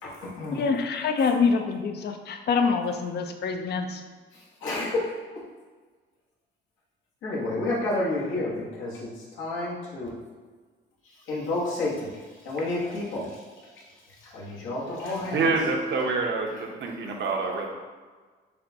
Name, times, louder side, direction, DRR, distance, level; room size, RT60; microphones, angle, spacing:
voice 1, 0.0-0.6 4.6-5.0 7.2-9.1 9.4-10.1 11.3-12.1 12.4-13.4 14.2-15.5, left 2 dB, 85° left, -6 dB, 1.2 m, -30 dB
voice 2, 0.5-4.0, left 5 dB, 55° left, 6 dB, 0.5 m, -25 dB
voice 3, 15.3-17.7, right 3 dB, 60° right, 1 dB, 0.8 m, -26 dB
6.5 x 2.2 x 2.7 m, 1.4 s
cardioid pair, 90°, 20 cm